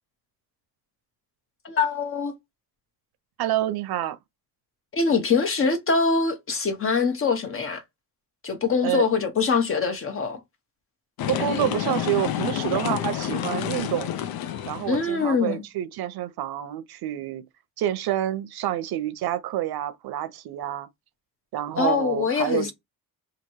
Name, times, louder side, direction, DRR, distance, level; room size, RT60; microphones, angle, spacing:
voice 1, 1.6-2.3 4.9-7.8 8.4-10.4 14.9-15.6 21.8-22.7, left 5 dB, 35° left, 0.8 m, -23 dB
voice 2, 3.4-4.2 8.8-9.1 11.3-14.1 14.7-17.4 17.8-20.9 21.5-22.7, right 13 dB, 90° right, 0.7 m, -28 dB
sound 1, 11.2-15.2, left 10 dB, 80° left, 0.5 m, -29 dB
2.9 x 2.6 x 4.4 m
cardioid pair, 165°, 36 cm